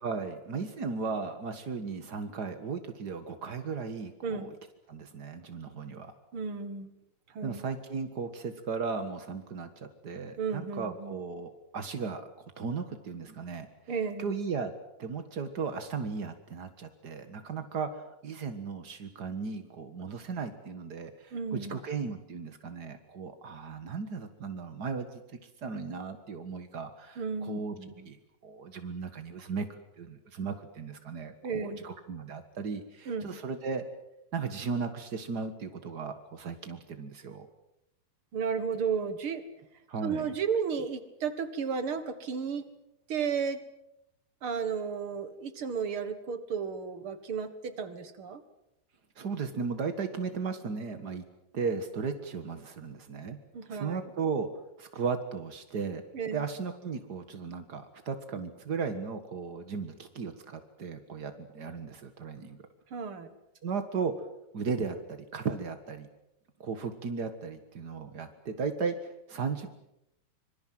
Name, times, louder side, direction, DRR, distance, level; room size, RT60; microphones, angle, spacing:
voice 1, 0.0-4.5 4.9-6.1 7.4-12.3 12.6-13.7 14.2-14.7 15.0-27.7 28.0-28.2 28.4-33.8 34.3-37.5 39.9-40.3 49.1-51.2 51.5-53.4 53.7-54.5 54.8-56.0 56.3-62.6 63.6-64.2 64.5-66.1 66.6-69.7, right 5 dB, 75° right, 8 dB, 0.9 m, -36 dB
voice 2, 6.3-6.9 7.4-7.6 10.4-11.2 13.9-14.3 21.3-21.8 27.2-28.1 31.4-31.9 33.1-33.4 38.3-39.4 40.0-42.6 43.1-43.6 44.4-48.4 53.5-54.0 56.1-56.5 62.9-63.3, right 6 dB, 50° right, 11 dB, 1.8 m, -33 dB
25.5 x 24.0 x 7.7 m, 0.86 s
omnidirectional pair, 4.5 m